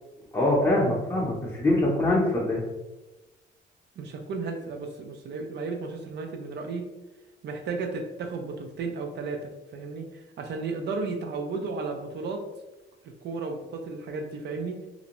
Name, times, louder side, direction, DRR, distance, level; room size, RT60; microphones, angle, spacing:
voice 1, 0.3-2.6, left 1 dB, 15° left, -5 dB, 0.6 m, -23 dB
voice 2, 4.0-6.9 7.4-12.4 13.2-14.8, right 4 dB, 60° right, 4 dB, 0.5 m, -34 dB
2.5 x 2.1 x 2.9 m, 1.1 s
cardioid pair, 90°, 20 cm